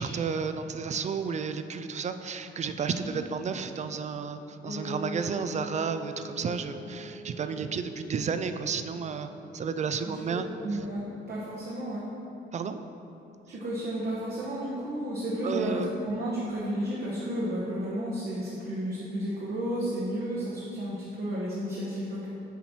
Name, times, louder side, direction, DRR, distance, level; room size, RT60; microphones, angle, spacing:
voice 1, 0.0-10.5 12.5-12.8 15.4-15.9, right 6 dB, 35° right, 9 dB, 0.4 m, -32 dB
Piano, 4.6-13.7 14.1-15.3 15.6-15.7 15.9-16.0 16.3-16.4 16.9-17.0, equal, 45° left, 1.2 m, -44 dB
voice 2, 10.6-12.0 13.5-22.3, equal, 55° right, -6 dB, 1.2 m, -32 dB
7.2 x 4.3 x 4.3 m, 2.8 s
cardioid pair, 90°, 20 cm